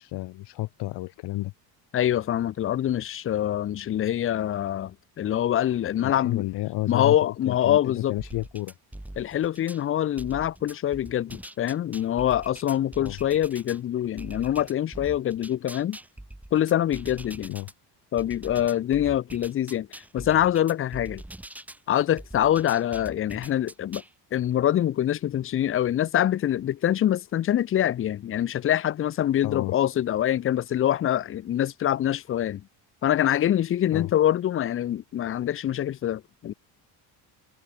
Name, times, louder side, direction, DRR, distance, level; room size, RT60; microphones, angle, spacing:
voice 1, 0.0-1.5 6.0-8.7 13.0-13.2 17.5-17.7 29.4-29.8 33.9-34.1, left 18 dB, 70° left, 5.9 m, -31 dB
voice 2, 1.9-6.5 6.9-8.1 9.2-16.0 16.5-17.5 18.1-19.9 20.1-21.2 21.9-24.0 24.3-32.6 33.0-36.5, left 11 dB, 30° left, 0.7 m, -25 dB
sound 1, 8.2-9.8 10.2-13.8 14.2-17.7 18.2-21.8 22.2-24.1, right 1 dB, 5° right, 2.0 m, -43 dB
cardioid pair, 165°, 41 cm